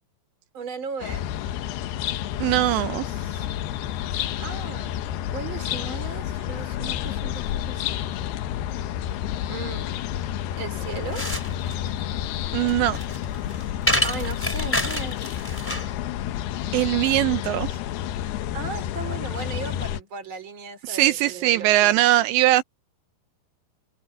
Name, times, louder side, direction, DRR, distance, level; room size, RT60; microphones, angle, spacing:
voice 1, 0.5-1.2 4.4-5.0 5.3-7.9 9.5-10.0 10.5-11.3 14.0-15.2 18.5-22.1, right 5 dB, 30° right, 3.7 m, -36 dB
sound 1, 1.0-20.0, left 11 dB, 70° left, 2.9 m, -30 dB
voice 2, 2.4-3.1 12.5-13.0 16.7-17.7 20.8-22.6, right 15 dB, 80° right, 2.9 m, -20 dB
sound 2, 10.8-15.9, equal, 5° left, 3.1 m, -28 dB
omnidirectional pair, 5.1 m